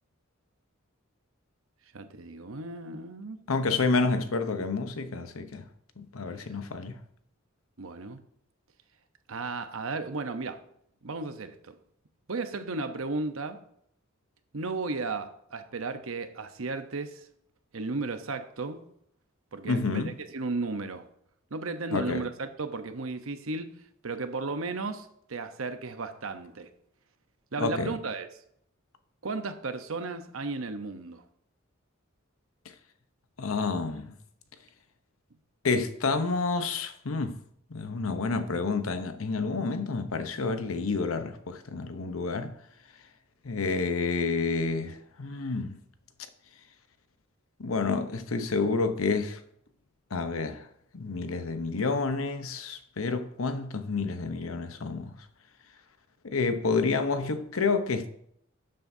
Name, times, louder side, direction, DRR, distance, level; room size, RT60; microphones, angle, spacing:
voice 1, 1.9-3.4 7.8-8.2 9.3-10.6 11.0-11.8 12.3-13.6 14.5-17.3 17.7-18.8 19.5-21.1 21.5-23.8 24.0-26.7 27.5-28.3 29.2-31.2, right 3 dB, 75° right, 0.9 m, -34 dB
voice 2, 3.5-5.7 6.0-7.0 19.6-20.2 21.9-22.3 27.6-27.9 33.4-34.1 35.6-37.4 37.7-42.5 43.4-45.8 47.6-49.4 50.1-50.7 50.9-55.2 56.2-58.1, left 4 dB, 80° left, 0.9 m, -29 dB
12.0 x 7.7 x 2.7 m
head